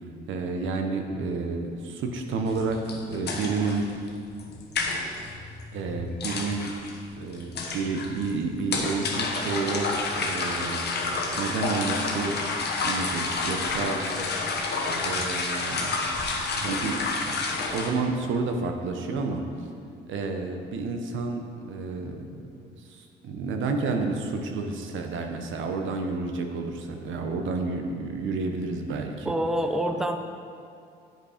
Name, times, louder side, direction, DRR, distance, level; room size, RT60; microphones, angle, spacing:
voice 1, 0.0-3.9 5.7-6.7 7.2-10.8 11.4-12.3 12.8-14.0 15.0-15.9 16.5-17.4 17.7-19.7 20.1-22.6 22.9-29.3, right 3 dB, 75° right, 4 dB, 0.9 m, -30 dB
sound 1, 2.5-17.9, left 3 dB, 55° left, 1.2 m, -30 dB
voice 2, 29.2-30.2, right 1 dB, 5° right, 6 dB, 0.5 m, -26 dB
9.1 x 5.2 x 5.0 m, 2.4 s
cardioid pair, 90°, 20 cm